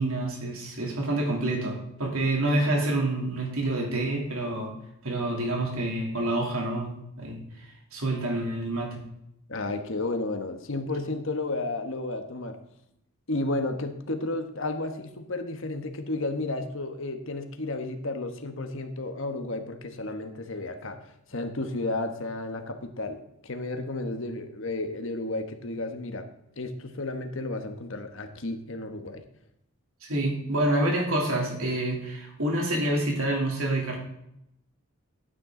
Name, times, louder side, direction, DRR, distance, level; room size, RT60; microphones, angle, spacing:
voice 1, 0.0-4.7 5.0-9.0 30.0-34.0, right 1 dB, 70° right, 0 dB, 3.1 m, -28 dB
voice 2, 9.5-12.6 13.3-21.0 21.3-26.3 26.6-29.2, left 2 dB, 60° left, 6 dB, 1.2 m, -32 dB
12.5 x 9.2 x 3.8 m, 0.79 s
head